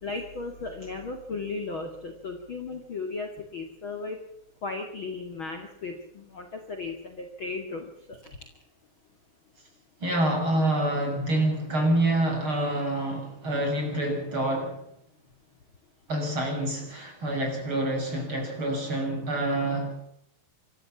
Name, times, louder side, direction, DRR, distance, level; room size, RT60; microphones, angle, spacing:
voice 1, 0.0-4.2 4.6-8.4, left 3 dB, 40° left, 3 dB, 2.4 m, -36 dB
voice 2, 10.0-14.8 16.1-20.1, right 1 dB, 30° right, 2 dB, 7.2 m, -27 dB
26.0 x 14.5 x 7.2 m, 0.74 s
omnidirectional pair, 4.3 m